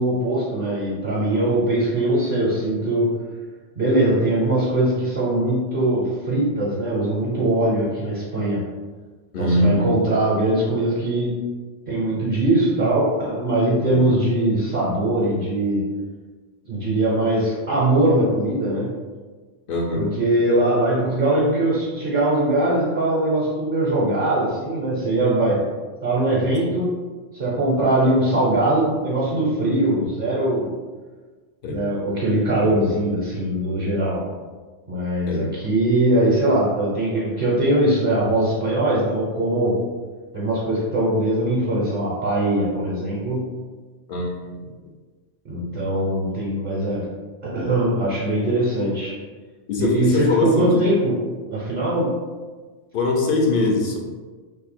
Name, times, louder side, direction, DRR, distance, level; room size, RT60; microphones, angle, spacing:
voice 1, 0.0-3.1 3.8-8.6 9.4-11.3 11.9-15.9 16.6-18.9 19.9-25.6 26.0-27.0 27.3-30.7 31.7-34.3 34.9-39.8 40.3-43.5 45.5-47.1 47.4-49.2 49.7-51.2 51.5-52.1, right 1 dB, 50° right, -6 dB, 0.9 m, -21 dB
voice 2, 9.3-10.0 13.9-14.1 19.7-20.1 31.6-31.8 32.6-32.8 35.3-35.5 44.1-44.3 44.6-44.7 49.7-50.8 52.9-54.0, left 2 dB, 55° left, 0 dB, 0.7 m, -22 dB
2.7 x 2.6 x 4.2 m, 1.4 s
omnidirectional pair, 1.2 m